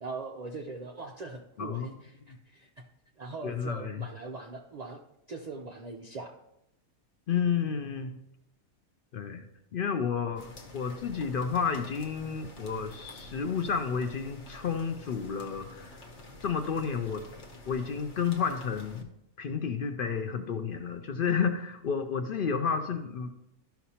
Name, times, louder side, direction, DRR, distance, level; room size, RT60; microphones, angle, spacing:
voice 1, 0.0-1.9 2.5-2.7 3.2-5.0 5.3-6.3, right 3 dB, 75° right, 1 dB, 0.3 m, -40 dB
voice 2, 1.6-1.9 3.4-4.0 7.3-8.2 9.1-9.4 9.7-16.1 16.4-17.2 17.7-19.1 19.4-23.3, left 6 dB, 75° left, 7 dB, 0.5 m, -31 dB
sound 1, 10.4-19.0, left 2 dB, 55° left, 1.2 m, -49 dB
12.5 x 5.8 x 2.8 m, 0.83 s
omnidirectional pair, 1.5 m